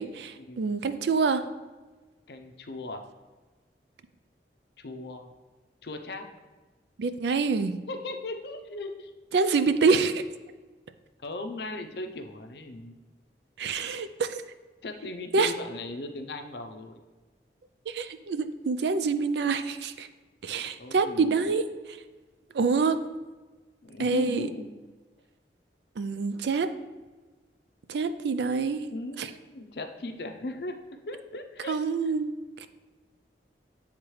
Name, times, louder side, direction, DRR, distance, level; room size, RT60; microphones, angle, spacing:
voice 1, 0.0-1.5 7.0-7.8 9.3-10.2 13.6-14.4 15.3-15.5 17.9-20.1 20.4-21.6 22.5-23.0 24.0-24.5 26.0-26.7 27.9-28.8 29.2-29.3 31.7-32.3, right 4 dB, 75° right, 11 dB, 0.4 m, -26 dB
voice 2, 2.3-3.0 4.8-5.3 5.8-6.3 7.9-9.1 11.2-12.9 14.8-17.0 20.8-21.5 23.8-24.7 28.9-30.8 31.1-31.8 32.0-32.1, left 2 dB, 65° left, 6 dB, 0.6 m, -38 dB
9.2 x 3.6 x 3.1 m, 1.3 s
head